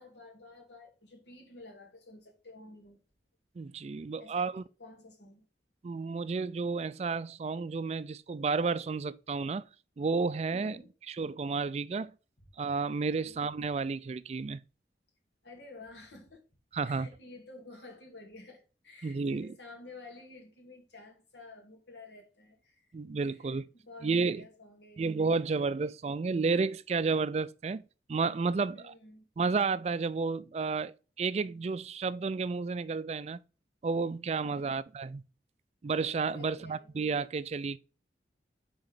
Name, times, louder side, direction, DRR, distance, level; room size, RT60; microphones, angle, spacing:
voice 1, 0.0-3.0 4.2-5.5 10.5-10.9 12.4-12.5 13.2-13.4 15.4-16.4 16.8-22.9 23.2-25.1 28.7-29.3 34.4-34.8 36.3-36.9, left 2 dB, 85° left, 2.3 m, -51 dB
voice 2, 3.6-4.6 5.8-9.6 10.0-10.8 11.1-12.1 12.6-14.6 16.7-17.1 19.0-19.5 22.9-23.7 24.0-24.4 25.0-27.8 28.1-28.9 29.4-33.4 33.8-35.2 35.8-37.8, right 4 dB, 35° right, 0.3 m, -31 dB
5.9 x 4.2 x 5.0 m
head